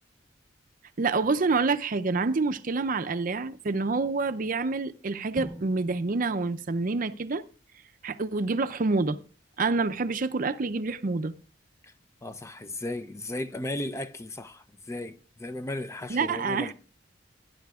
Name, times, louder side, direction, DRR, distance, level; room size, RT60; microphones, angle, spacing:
voice 1, 1.0-7.4 8.0-9.2 9.6-11.3 16.1-16.7, right 3 dB, 45° right, 0.5 m, -27 dB
Drum, 5.4-7.4, equal, ahead, 1.1 m, -45 dB
voice 2, 12.2-16.7, left 1 dB, 15° left, 0.4 m, -35 dB
17.5 x 10.0 x 2.4 m
head